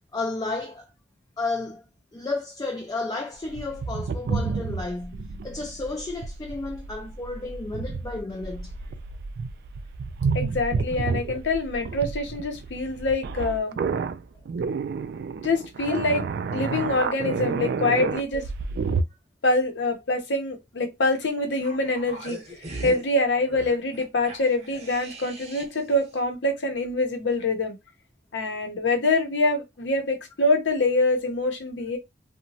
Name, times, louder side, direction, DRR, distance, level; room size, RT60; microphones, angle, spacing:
voice 1, 0.1-0.9 1.4-1.9 2.1-8.7 15.9-16.0, left 3 dB, 20° left, 0.4 m, -32 dB
sound 1, 3.4-19.0, right 5 dB, 60° right, 0.3 m, -30 dB
voice 2, 10.3-13.8 15.4-16.2 16.5-18.4 19.4-22.4 22.8-27.8 28.3-32.0, left 2 dB, 80° left, 0.7 m, -25 dB
sound 2, 21.5-25.9 26.2-26.3, right 2 dB, 40° right, 0.8 m, -40 dB
2.8 x 2.1 x 2.7 m
head